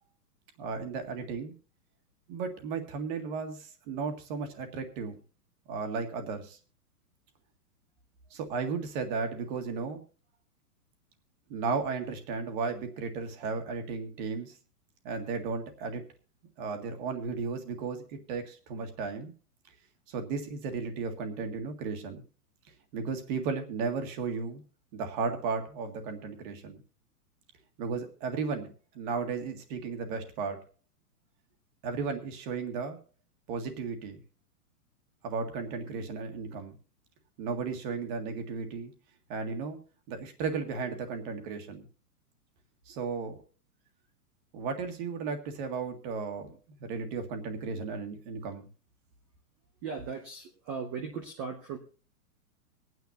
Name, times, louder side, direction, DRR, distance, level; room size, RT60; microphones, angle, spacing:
voice 1, 0.6-1.5 2.3-5.2 5.7-6.6 8.3-10.0 11.5-14.6 15.0-16.0 16.6-19.3 20.1-22.2 22.9-24.6 24.9-26.8 27.8-30.6 31.8-33.0 33.5-34.2 35.2-36.7 37.4-38.9 39.3-39.8 40.1-41.9 42.9-43.4 44.5-48.7, right 5 dB, 35° right, 6 dB, 1.8 m, -34 dB
voice 2, 49.8-51.8, right 5 dB, 15° right, 3 dB, 0.5 m, -38 dB
25.0 x 9.4 x 2.8 m, 0.36 s
hypercardioid pair, 160°, 45 cm